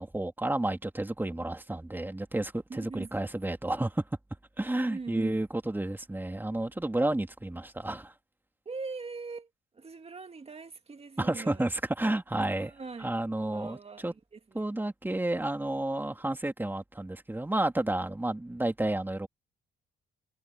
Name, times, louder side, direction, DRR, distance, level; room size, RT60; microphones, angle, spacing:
voice 1, 0.0-4.0 4.6-8.1 11.2-12.7 13.0-14.1 14.5-19.3, right 1 dB, 10° right, 2.6 m, -31 dB
voice 2, 2.7-3.1 4.7-5.4 8.7-9.5 9.8-11.6 12.4-13.1 13.4-14.6, right 4 dB, 30° right, 2.1 m, -41 dB
cardioid pair, 90°, 20 cm